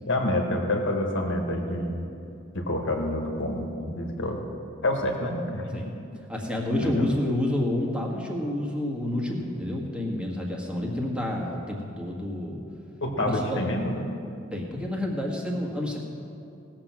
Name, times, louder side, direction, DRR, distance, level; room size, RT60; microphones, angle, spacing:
voice 1, 0.0-2.0 2.5-4.4 4.8-5.9 6.8-7.1 13.0-14.0, left 1 dB, 65° left, 2 dB, 1.7 m, -28 dB
voice 2, 6.3-12.6 13.2-13.7 14.5-16.0, left 1 dB, 5° right, -2 dB, 1.7 m, -29 dB
18.0 x 7.5 x 6.1 m, 2.6 s
head